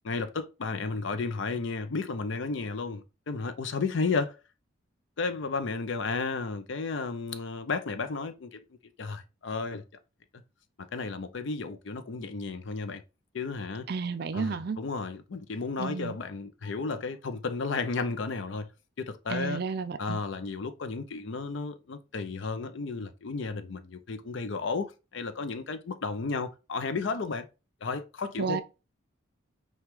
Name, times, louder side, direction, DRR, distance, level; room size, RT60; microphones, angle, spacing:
voice 1, 0.0-4.3 5.2-8.6 9.0-9.8 10.8-13.0 13.3-13.9 14.3-18.7 19.0-19.6 20.0-27.5 27.8-28.6, left 4 dB, 65° left, 0.5 m, -33 dB
voice 2, 13.9-14.8 15.8-16.2 19.3-20.2 28.4-28.6, right 5 dB, 50° right, 0.4 m, -32 dB
5.8 x 2.3 x 3.5 m
head